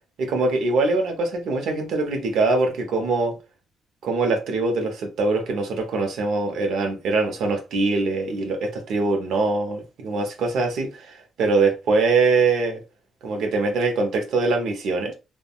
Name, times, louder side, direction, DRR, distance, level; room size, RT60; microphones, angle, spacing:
voice 1, 0.2-3.4 4.0-12.8 13.2-15.1, right 3 dB, 75° right, 0.8 m, -23 dB
3.4 x 2.1 x 2.3 m
cardioid pair, 90°, 0 cm